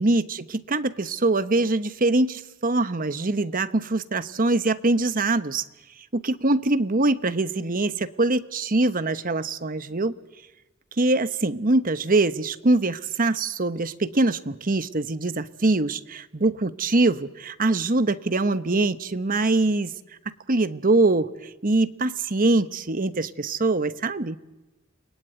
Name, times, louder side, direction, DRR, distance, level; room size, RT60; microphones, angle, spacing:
voice 1, 0.0-5.6 6.1-10.2 11.0-19.9 20.5-24.4, right 2 dB, 40° right, 12 dB, 1.0 m, -23 dB
29.5 x 21.0 x 9.3 m, 1.1 s
head